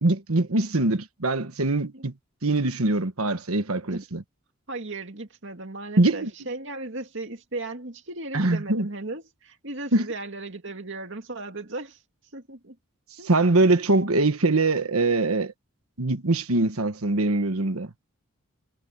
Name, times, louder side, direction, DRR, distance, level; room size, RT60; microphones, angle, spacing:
voice 1, 0.0-2.1 2.4-4.2 6.0-6.3 8.3-8.9 9.9-10.1 13.2-15.5 16.0-17.9, right 2 dB, 80° right, 1.4 m, -23 dB
voice 2, 4.7-12.0 12.3-12.8 13.2-13.3, right 2 dB, 55° right, 2.4 m, -36 dB
head